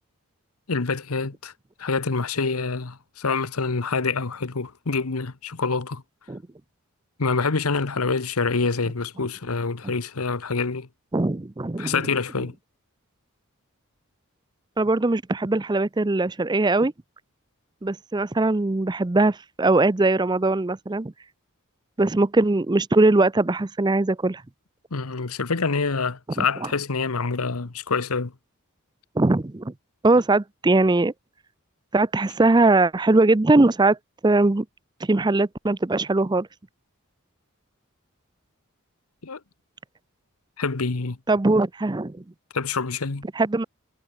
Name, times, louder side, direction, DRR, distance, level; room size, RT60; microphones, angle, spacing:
voice 1, 0.7-1.5 1.8-6.0 7.2-10.9 11.8-12.5 24.9-28.3 39.2-39.4 40.6-41.2 42.5-43.3, left 4 dB, 90° left, 1.1 m, -26 dB
voice 2, 11.1-12.0 14.8-16.9 17.8-21.1 22.0-24.4 26.4-26.5 29.2-29.7 30.0-31.1 31.9-34.0 34.2-34.7 35.0-36.5 41.3-42.2 43.4-43.6, right 2 dB, 20° right, 0.5 m, -21 dB
head